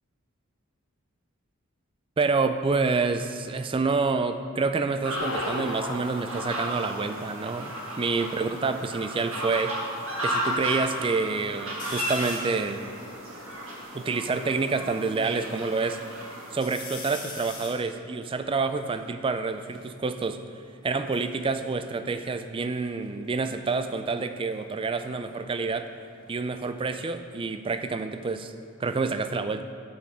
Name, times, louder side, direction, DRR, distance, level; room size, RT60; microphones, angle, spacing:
voice 1, 2.2-9.8 10.2-12.9 13.9-16.0 16.5-20.4 20.8-25.9 26.3-28.5 28.8-29.6, right 4 dB, 25° right, 9 dB, 0.3 m, -28 dB
sound 1, 5.0-16.6, equal, 65° right, 1.7 m, -34 dB
sound 2, 5.1-10.0 11.3-11.8, left 2 dB, 70° left, 0.8 m, -37 dB
sound 3, 11.8-12.6 13.2-13.3 13.5-15.0 15.5-16.1 16.5-19.9 20.8-22.7 23.0-23.5 25.1-27.7 28.1-28.8, left 4 dB, 40° left, 1.3 m, -45 dB
8.4 x 7.2 x 4.5 m, 2.4 s
head